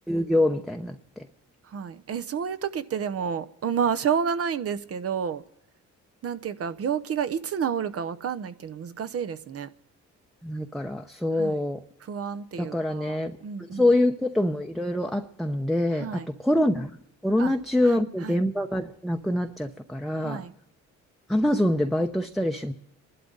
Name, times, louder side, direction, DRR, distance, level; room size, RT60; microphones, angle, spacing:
voice 1, 0.1-1.3 10.4-11.8 12.6-13.3 13.7-16.1 16.4-16.9 17.2-20.4 21.3-22.7, left 1 dB, ahead, 0.8 m, -25 dB
voice 2, 1.6-5.4 6.2-9.7 11.4-11.6 12.0-13.9 15.9-16.3 17.4-17.5 17.8-18.4 20.2-20.5, right 7 dB, 50° right, 0.9 m, -30 dB
27.5 x 12.0 x 4.0 m
cardioid pair, 90°, 30 cm